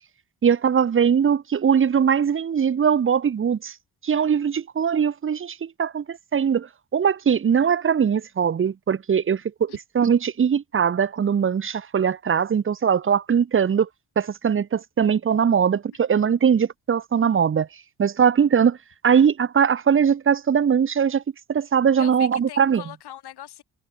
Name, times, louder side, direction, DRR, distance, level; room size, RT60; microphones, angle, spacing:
voice 1, 0.4-3.7 4.0-6.7 6.9-13.9 14.2-17.7 18.0-18.8 19.0-21.2 21.5-22.8, right 7 dB, 30° right, 0.7 m, -21 dB
voice 2, 22.0-23.6, left 12 dB, 75° left, 2.2 m, -41 dB
cardioid pair, 75°, 39 cm